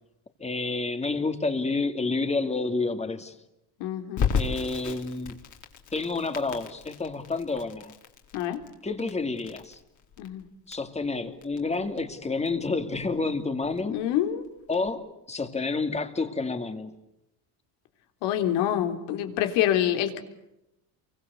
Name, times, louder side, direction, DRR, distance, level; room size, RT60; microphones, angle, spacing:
voice 1, 0.4-3.3 4.3-5.4 5.9-7.9 8.8-9.8 10.7-14.0 14.7-16.9, left 3 dB, 15° left, 8 dB, 2.7 m, -29 dB
voice 2, 3.8-4.3 8.3-8.6 10.2-10.4 13.9-14.5 18.2-20.2, left 11 dB, 80° left, 6 dB, 3.7 m, -26 dB
Crackle, 4.2-14.9, left 6 dB, 45° left, 4.4 m, -35 dB
29.5 x 24.5 x 8.1 m, 0.89 s
cardioid pair, 125°, 40 cm